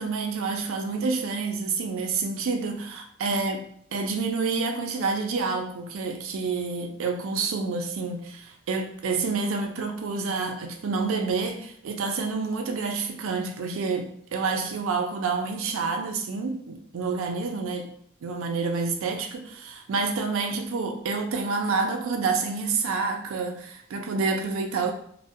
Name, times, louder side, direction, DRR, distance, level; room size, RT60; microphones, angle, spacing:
voice 1, 0.0-3.6 3.9-17.9 18.2-24.9, right 4 dB, 70° right, 4 dB, 0.3 m, -28 dB
2.6 x 2.0 x 2.4 m, 0.66 s
head